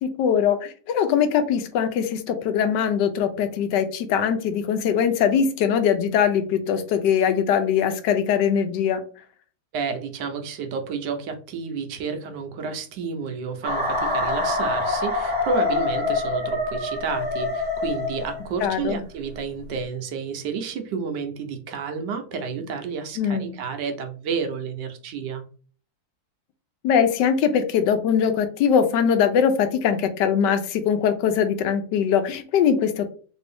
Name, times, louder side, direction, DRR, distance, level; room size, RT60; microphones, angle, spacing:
voice 1, 0.0-9.0 18.6-19.0 23.2-23.6 26.8-33.1, left 7 dB, 85° left, 8 dB, 1.3 m, -21 dB
voice 2, 9.7-25.4, right 5 dB, 80° right, 6 dB, 1.3 m, -30 dB
sound 1, 13.6-18.6, left 2 dB, 25° right, 1.6 m, -25 dB
3.4 x 2.6 x 3.3 m, 0.41 s
omnidirectional pair, 1.8 m